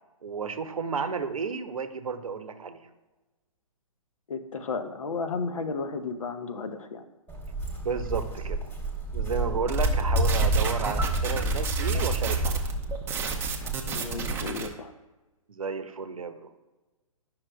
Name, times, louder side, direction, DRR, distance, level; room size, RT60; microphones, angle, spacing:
voice 1, 0.2-2.8 7.8-8.6 9.1-12.7 15.5-16.5, right 5 dB, 70° right, 9 dB, 0.8 m, -32 dB
voice 2, 4.3-7.1 13.9-14.9, left 4 dB, 65° left, 8 dB, 0.8 m, -33 dB
Walk footsteps, 7.3-14.3, right 1 dB, 10° left, 1.1 m, -28 dB
sound 1, 9.7-14.7, right 5 dB, 10° right, 0.6 m, -33 dB
11.0 x 5.7 x 2.2 m, 1.1 s
figure-of-eight pair, 125°, 18 cm